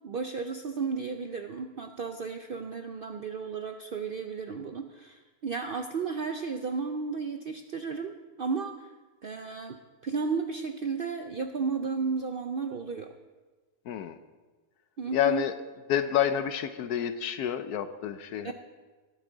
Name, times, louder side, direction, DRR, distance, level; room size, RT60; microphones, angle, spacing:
voice 1, 0.0-8.9 9.2-13.1 15.0-15.4 18.4-18.5, right 5 dB, 70° right, 6 dB, 0.5 m, -33 dB
voice 2, 13.9-14.2 15.1-15.5 15.9-18.5, left 10 dB, 80° left, 10 dB, 1.2 m, -28 dB
18.5 x 8.2 x 3.9 m, 1.3 s
omnidirectional pair, 1.6 m